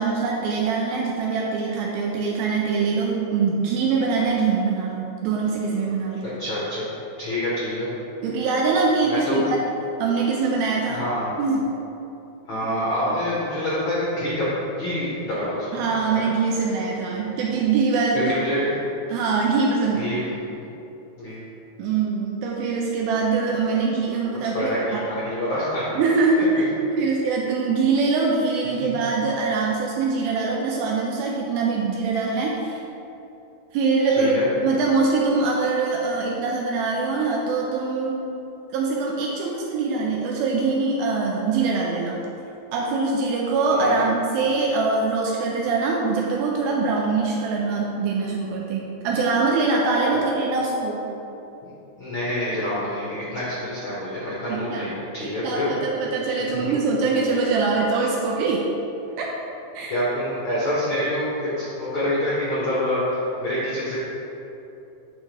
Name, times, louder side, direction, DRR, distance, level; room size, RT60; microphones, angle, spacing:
voice 1, 0.0-6.2 8.2-9.7 10.0-11.0 11.4-11.7 13.1-13.2 15.7-18.3 19.1-20.1 21.8-25.1 26.0-32.8 33.7-38.2 38.7-42.2 42.7-51.1 54.5-54.9 55.2-58.7 59.2-59.3 59.8-60.0, right 4 dB, 85° right, -2 dB, 2.4 m, -23 dB
voice 2, 6.4-6.8 7.2-7.9 9.0-9.4 10.9-11.3 12.5-14.5 14.7-15.8 16.1-16.2 18.3-18.8 19.9-20.3 21.2-21.4 24.5-25.8 26.4-26.5 28.8-28.9 34.2-34.5 43.7-44.1 51.6-51.7 52.0-55.7 56.5-56.8 59.9-64.0, left 1 dB, 85° left, -9 dB, 1.1 m, -26 dB
8.9 x 4.2 x 3.4 m, 2.8 s
omnidirectional pair, 4.3 m